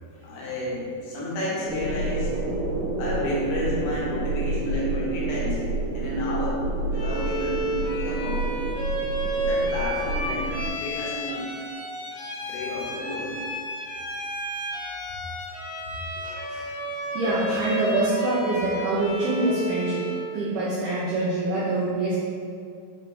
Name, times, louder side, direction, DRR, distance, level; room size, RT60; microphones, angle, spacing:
voice 1, 0.2-2.4 3.0-8.6 9.4-11.5 12.4-13.3 15.9-16.0 16.8-16.9, left 1 dB, 75° left, -6 dB, 3.1 m, -31 dB
sound 1, 1.7-10.7, right 2 dB, 70° right, 3.4 m, -29 dB
Bowed string instrument, 6.9-20.3, right 1 dB, 90° left, 1.6 m, -31 dB
voice 2, 16.2-16.7 17.1-20.1 20.3-22.2, right 2 dB, 90° right, -8 dB, 2.2 m, -25 dB
7.5 x 3.3 x 4.6 m, 2.3 s
omnidirectional pair, 5.7 m